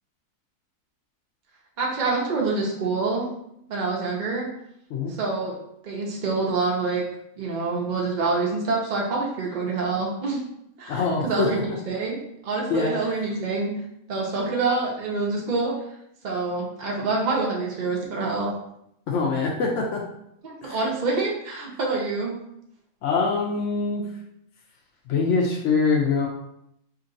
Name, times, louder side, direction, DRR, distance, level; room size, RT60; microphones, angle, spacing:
voice 1, 1.8-3.3 3.7-4.5 5.2-5.6 5.8-7.0 7.4-10.4 10.8-11.6 11.9-12.2 12.4-13.7 14.1-15.7 16.2-18.5 20.4-22.4, right 3 dB, 80° right, -2 dB, 0.4 m, -26 dB
voice 2, 10.9-11.8 12.7-12.9 19.1-20.0 20.6-20.8 23.0-24.1 25.1-26.3, left 4 dB, 70° left, -1 dB, 0.7 m, -24 dB
2.9 x 2.6 x 3.8 m, 0.78 s
omnidirectional pair, 1.7 m